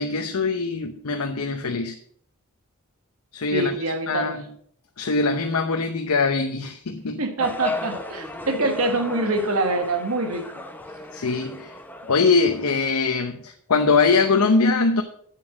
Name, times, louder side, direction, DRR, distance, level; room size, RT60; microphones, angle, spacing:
voice 1, 0.0-2.0 3.3-3.7 4.1-4.4 5.0-7.2 11.1-11.7 12.1-15.0, left 4 dB, 90° left, 0.8 m, -22 dB
voice 2, 3.5-4.4 7.2-10.5, right 2 dB, 75° right, 1.5 m, -25 dB
sound 1, 7.4-12.9, left 2 dB, 10° left, 0.9 m, -35 dB
8.4 x 7.5 x 6.1 m
head